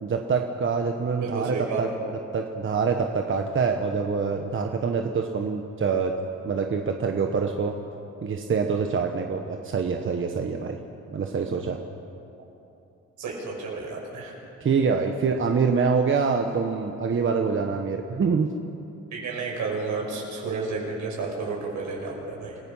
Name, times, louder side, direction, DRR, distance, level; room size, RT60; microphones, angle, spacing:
voice 1, 0.0-1.9 2.3-6.1 6.4-7.7 8.2-10.8 11.1-11.8 14.6-18.5, right 5 dB, 40° right, 4 dB, 1.3 m, -25 dB
voice 2, 1.1-1.8 13.2-14.3 19.1-22.6, right 4 dB, 75° right, -1 dB, 5.9 m, -31 dB
28.5 x 16.5 x 5.7 m, 2.7 s
cardioid pair, 90°, 30 cm